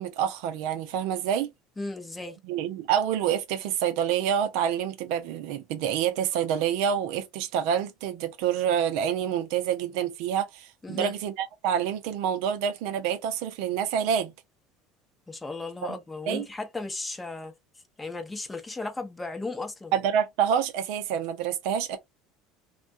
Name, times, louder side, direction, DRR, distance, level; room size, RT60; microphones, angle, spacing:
voice 1, 0.0-1.5 2.4-14.3 15.9-16.0 16.3-16.5 19.9-22.0, right 8 dB, 70° right, 0.5 m, -27 dB
voice 2, 1.8-2.4 10.8-11.1 15.3-17.5 18.0-19.9, left 3 dB, 15° left, 0.7 m, -35 dB
2.2 x 2.2 x 2.5 m
hypercardioid pair, 80°, 0 cm